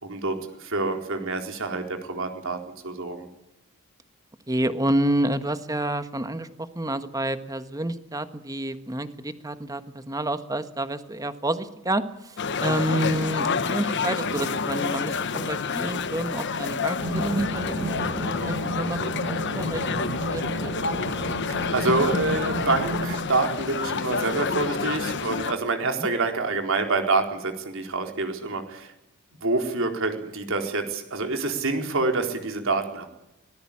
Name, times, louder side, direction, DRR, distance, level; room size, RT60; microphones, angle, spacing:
voice 1, 0.0-2.6 2.8-3.3 21.7-28.9 29.4-33.1, right 3 dB, 60° right, 4 dB, 4.1 m, -27 dB
voice 2, 4.5-19.0 19.3-21.1 25.8-26.1, right 1 dB, 15° right, 10 dB, 1.5 m, -29 dB
sound 1, 12.4-25.5, left 5 dB, 55° left, 1.2 m, -29 dB
sound 2, 17.0-23.2, right 1 dB, 85° right, 5.0 m, -32 dB
24.5 x 19.5 x 8.7 m, 0.91 s
head